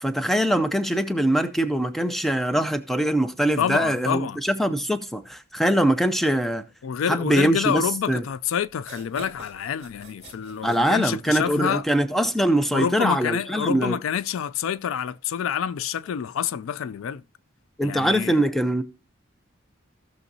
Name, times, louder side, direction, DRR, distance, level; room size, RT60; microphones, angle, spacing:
voice 1, 0.0-6.6 7.1-8.2 10.6-14.0 17.8-18.8, right 1 dB, ahead, 0.5 m, -23 dB
voice 2, 3.6-4.4 6.8-11.8 12.7-17.2 17.8-18.4, left 8 dB, 80° left, 0.3 m, -27 dB
sound 1, 8.2-8.3 8.7-11.6, right 3 dB, 30° right, 2.3 m, -44 dB
16.5 x 6.3 x 2.6 m
head